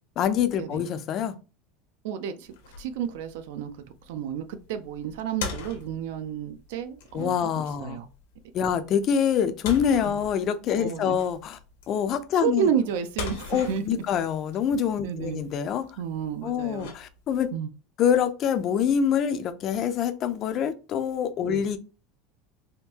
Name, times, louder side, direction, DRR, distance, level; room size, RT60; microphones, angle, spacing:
voice 1, 0.2-1.3 7.1-8.0 8.5-11.6 11.9-12.7 13.5-15.8 16.4-17.5 18.0-21.8, left 8 dB, 30° left, 0.3 m, -25 dB
voice 2, 2.0-3.7 4.1-8.1 10.8-11.2 12.4-13.8 15.0-15.4 16.0-16.9 17.5-17.7 21.4-21.6, right 8 dB, 75° right, 0.4 m, -31 dB
sound 1, 2.4-17.5, left 5 dB, 80° left, 0.8 m, -42 dB
3.6 x 2.5 x 2.8 m
cardioid pair, 175°, 0 cm